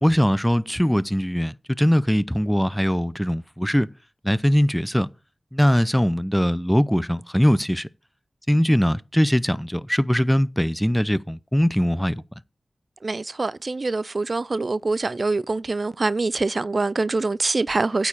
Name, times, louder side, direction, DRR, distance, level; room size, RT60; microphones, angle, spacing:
voice 1, 0.0-3.9 4.2-5.1 5.5-7.9 8.5-12.2, equal, 5° left, 0.6 m, -21 dB
voice 2, 13.0-18.1, right 3 dB, 55° right, 0.5 m, -24 dB
9.1 x 4.6 x 7.2 m
cardioid pair, 40°, 0 cm